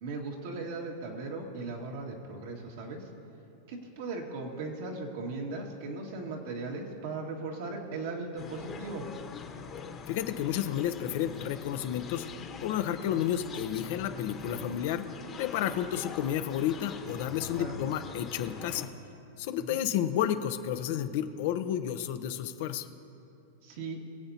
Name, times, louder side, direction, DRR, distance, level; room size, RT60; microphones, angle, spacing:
voice 1, 0.0-3.0 3.7-9.0 14.6-14.7 17.6-17.8 19.6-19.8 23.6-24.0, right 3 dB, 65° right, 0 dB, 2.0 m, -38 dB
sound 1, 8.4-18.9, left 5 dB, 30° left, 1.3 m, -43 dB
voice 2, 10.1-12.3 12.6-15.0 15.4-18.9 19.4-22.9, left 10 dB, 60° left, 9 dB, 0.8 m, -31 dB
23.5 x 8.0 x 2.9 m, 2.7 s
hypercardioid pair, 120°, 0 cm